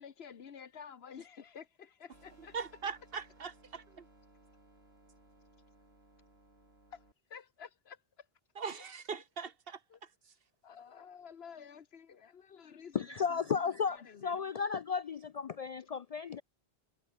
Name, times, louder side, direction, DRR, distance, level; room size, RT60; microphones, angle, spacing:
voice 1, 0.0-2.6 6.9-7.0 7.3-8.3 9.2-9.3 9.9-10.0 10.6-13.5 13.9-14.7 15.8-15.9, left 7 dB, 80° left, 1.3 m, -51 dB
sound 1, 2.1-7.1, right 1 dB, 85° right, 6.1 m, -62 dB
voice 2, 2.5-4.0 8.6-9.8, right 6 dB, 65° right, 1.4 m, -41 dB
voice 3, 12.9-16.4, left 6 dB, 55° left, 0.4 m, -34 dB
omnidirectional pair, 1.0 m